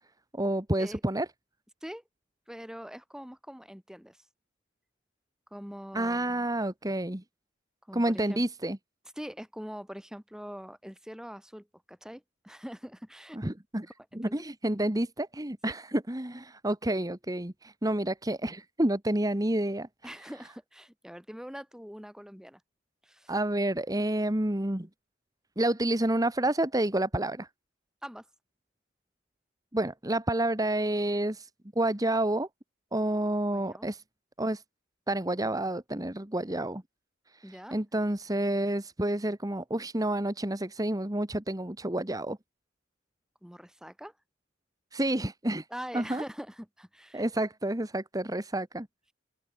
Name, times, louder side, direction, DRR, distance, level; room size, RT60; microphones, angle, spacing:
voice 1, 0.3-1.3 5.9-7.2 7.9-8.8 13.3-13.9 14.1-20.1 23.3-24.9 25.6-27.5 29.7-31.5 31.7-32.5 32.9-34.0 34.4-34.6 35.1-36.8 37.3-42.4 44.9-45.6 45.9-46.2 47.1-48.9, right 1 dB, 20° right, 1.5 m, -29 dB
voice 2, 2.5-4.2 5.5-6.4 7.9-8.4 9.2-13.4 14.0-14.4 20.0-22.6 23.0-23.3 28.0-28.3 33.5-33.9 37.4-37.8 43.4-44.1 45.7-47.2, equal, 5° right, 4.8 m, -43 dB
open air
head